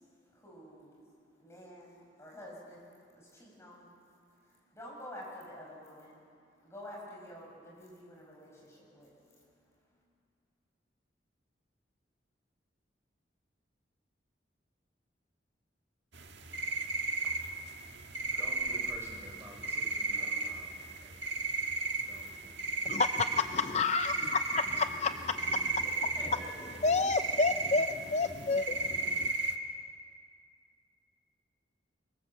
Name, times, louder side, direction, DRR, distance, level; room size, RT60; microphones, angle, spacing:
voice 1, 0.0-10.0 25.7-26.8, equal, 15° left, -4 dB, 7.2 m, -50 dB
sound 1, 16.1-29.5, right 3 dB, 70° right, 1.7 m, -35 dB
voice 2, 18.2-21.4 22.1-22.5, equal, 15° right, -3 dB, 6.2 m, -51 dB
voice 3, 22.8-24.1 24.5-25.8 26.8-29.3, left 4 dB, 35° left, 8 dB, 0.5 m, -30 dB
25.0 x 23.5 x 7.6 m, 2.4 s
head